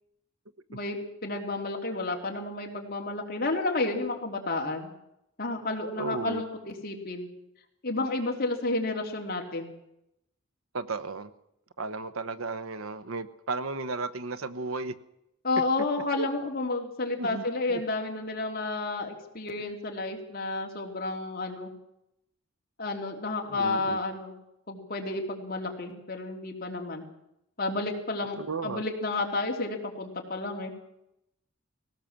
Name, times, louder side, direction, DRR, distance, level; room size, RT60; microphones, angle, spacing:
voice 1, 0.7-4.9 5.4-7.3 7.8-9.7 15.4-21.7 22.8-24.3 24.7-27.0 27.6-28.4 28.6-30.7, left 2 dB, 45° left, 1 dB, 3.2 m, -31 dB
voice 2, 6.0-6.4 10.7-11.3 11.8-14.9 16.2-16.3 17.2-17.8 23.5-24.0 28.4-28.8, right 3 dB, 80° right, 13 dB, 1.0 m, -34 dB
20.0 x 17.5 x 7.4 m, 0.83 s
head